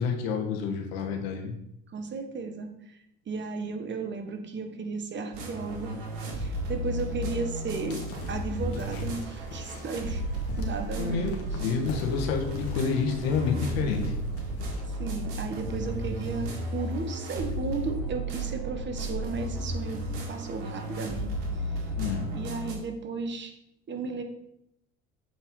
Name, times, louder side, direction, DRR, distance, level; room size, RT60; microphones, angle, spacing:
voice 1, 0.0-1.5 11.0-14.0 22.0-22.3, left 5 dB, 90° left, 3 dB, 1.3 m, -29 dB
voice 2, 1.9-3.0 3.3-6.0 6.4-8.0 8.3-10.2 10.6-11.7 14.9-21.4 22.3-23.5 23.9-24.2, right 4 dB, 40° right, 6 dB, 1.1 m, -34 dB
sound 1, 5.3-22.7, right 1 dB, 90° right, 1.8 m, -33 dB
sound 2, 7.6-15.0, left 3 dB, 50° left, 1.6 m, -43 dB
7.7 x 4.4 x 3.7 m, 0.79 s
supercardioid pair, 85°, 30 cm